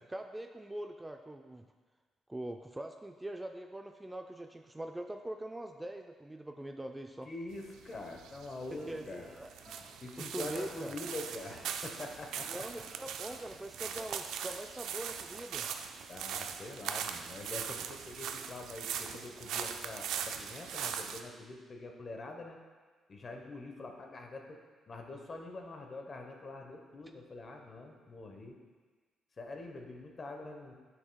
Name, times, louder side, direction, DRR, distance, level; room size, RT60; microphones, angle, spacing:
voice 1, 0.1-1.7 2.3-7.3 8.7-9.5 10.2-10.9 12.5-15.7, right 1 dB, 10° right, 5 dB, 0.3 m, -43 dB
voice 2, 7.2-9.3 10.0-12.7 16.1-22.6 23.1-24.6 24.9-28.5 29.4-30.7, left 2 dB, 40° left, 3 dB, 1.0 m, -45 dB
sound 1, 7.5-21.2, right 8 dB, 85° right, 0.4 m, -41 dB
sound 2, 8.5-13.9, left 1 dB, 15° left, 1.2 m, -58 dB
9.6 x 6.0 x 2.3 m, 1.4 s
cardioid pair, 90°, 0 cm